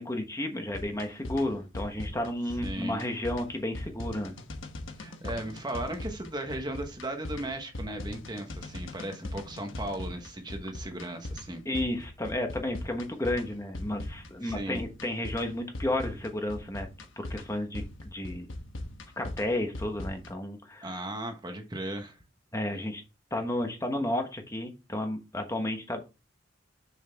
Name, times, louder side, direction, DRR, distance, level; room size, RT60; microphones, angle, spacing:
voice 1, 0.0-4.3 11.6-16.9 17.2-18.5 19.2-20.9 22.5-23.0 23.3-26.0, left 1 dB, 15° left, 1.2 m, -32 dB
sound 1, 0.7-20.3, left 1 dB, 80° left, 1.2 m, -40 dB
voice 2, 2.6-3.0 5.0-11.6 14.4-14.8 20.8-22.2, right 1 dB, 20° right, 1.2 m, -36 dB
6.7 x 6.5 x 3.5 m
head